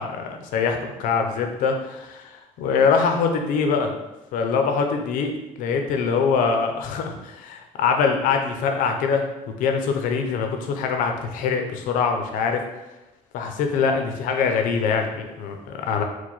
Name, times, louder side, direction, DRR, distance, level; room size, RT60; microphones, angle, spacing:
voice 1, 0.0-3.9 4.3-9.2 9.6-12.6 13.3-16.0, left 5 dB, 90° left, 4 dB, 0.6 m, -23 dB
4.6 x 2.2 x 4.0 m, 0.99 s
cardioid pair, 105°, 13 cm